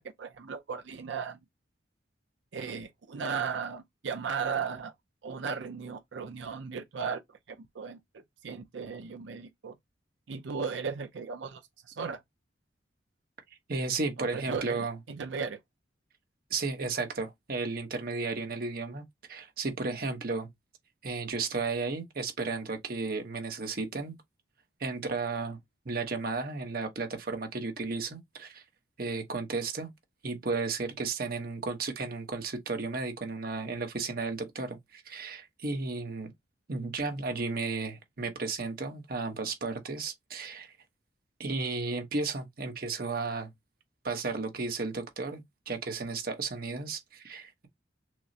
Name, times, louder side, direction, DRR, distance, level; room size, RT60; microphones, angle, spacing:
voice 1, 0.0-1.4 2.5-4.9 5.2-7.2 7.5-8.0 8.4-9.7 10.3-11.6 11.9-12.2 14.2-15.6, right 5 dB, 75° right, 0.5 m, -36 dB
voice 2, 13.7-15.0 16.5-20.5 21.0-24.2 24.8-25.6 25.8-28.6 29.0-29.9 30.2-36.3 36.7-40.7 41.4-43.5 44.0-47.7, right 3 dB, 50° right, 0.9 m, -34 dB
6.0 x 2.0 x 2.7 m
head